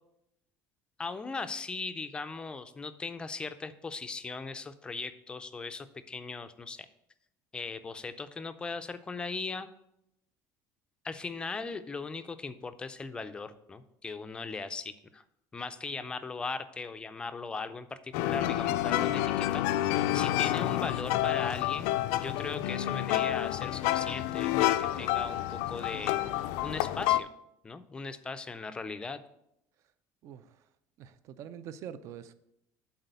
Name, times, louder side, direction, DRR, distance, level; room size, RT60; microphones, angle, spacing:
voice 1, 1.0-6.9 7.5-9.7 11.0-15.2 15.5-19.8 20.1-26.2 26.6-27.3 27.6-29.2, left 4 dB, 15° left, 10 dB, 0.4 m, -38 dB
sound 1, 18.1-27.2, left 14 dB, 90° left, 0.4 m, -29 dB
voice 2, 30.2-30.6 31.0-32.3, right 9 dB, 45° right, 13 dB, 0.5 m, -45 dB
8.1 x 4.1 x 6.7 m, 0.80 s
cardioid pair, 165°, 7 cm